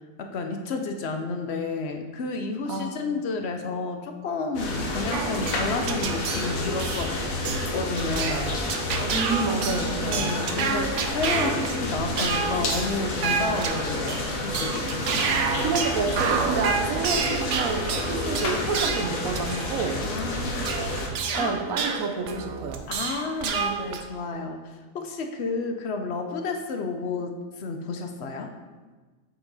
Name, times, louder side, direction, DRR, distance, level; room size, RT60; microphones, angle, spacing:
voice 1, 0.2-7.1 7.7-8.5 10.0-15.4 20.0-20.7 21.3-21.6 22.9-24.6 24.9-28.5, left 3 dB, 55° left, 5 dB, 0.9 m, -31 dB
sound 1, 4.5-21.1, left 2 dB, 85° left, 1.5 m, -30 dB
sound 2, 5.1-24.0, right 5 dB, 65° right, 1.0 m, -30 dB
voice 2, 9.1-10.4 15.6-20.0 21.3-22.8, right 4 dB, 85° right, 5 dB, 1.2 m, -29 dB
7.5 x 5.9 x 4.1 m, 1.3 s
omnidirectional pair, 1.4 m